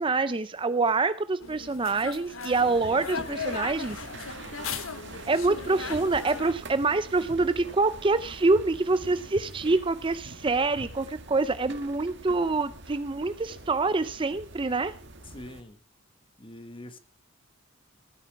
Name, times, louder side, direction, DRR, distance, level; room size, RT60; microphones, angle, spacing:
voice 1, 0.0-4.0 5.3-14.9, right 3 dB, 25° right, 13 dB, 0.5 m, -26 dB
sound 1, 1.4-6.5, left 5 dB, 80° left, 1.1 m, -37 dB
sound 2, 2.5-15.6, right 2 dB, 60° right, 1.7 m, -44 dB
voice 2, 15.2-15.8 16.4-17.0, left 1 dB, 25° left, 10 dB, 1.3 m, -44 dB
16.0 x 9.7 x 4.7 m, 0.37 s
head